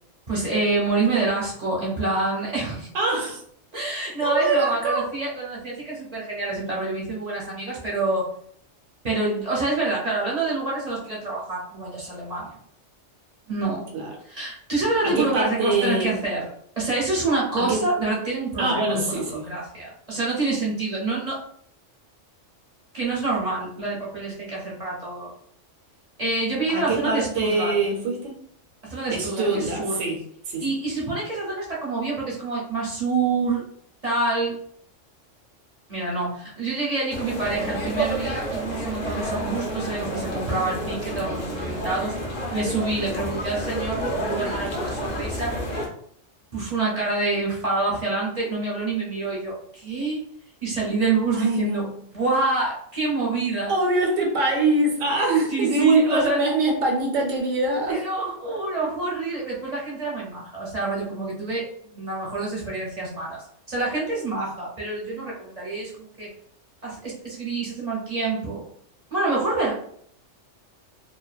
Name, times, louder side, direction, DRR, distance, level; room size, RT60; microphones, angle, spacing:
voice 1, 0.3-2.9 3.7-8.3 9.0-12.5 13.5-13.9 14.2-16.5 16.8-18.8 19.1-21.4 22.9-25.3 26.2-27.8 28.8-30.0 30.6-33.6 34.0-34.6 35.9-42.2 42.5-45.6 46.5-50.2 50.6-51.9 52.1-53.7 55.5-56.6 57.9-63.4 63.7-66.3 66.8-68.6 69.1-69.7, right 3 dB, 45° right, -5 dB, 0.6 m, -27 dB
voice 2, 2.9-3.4 4.2-5.1 13.9-14.1 15.0-16.1 17.6-17.8 18.6-19.5 26.7-28.4 29.1-30.2 30.5-30.7 51.3-51.9 53.7-58.0, right 2 dB, 85° right, 0 dB, 1.1 m, -23 dB
sound 1, 37.1-45.9, equal, 50° left, 0.5 m, -29 dB
2.5 x 2.2 x 2.3 m, 0.66 s
omnidirectional pair, 1.3 m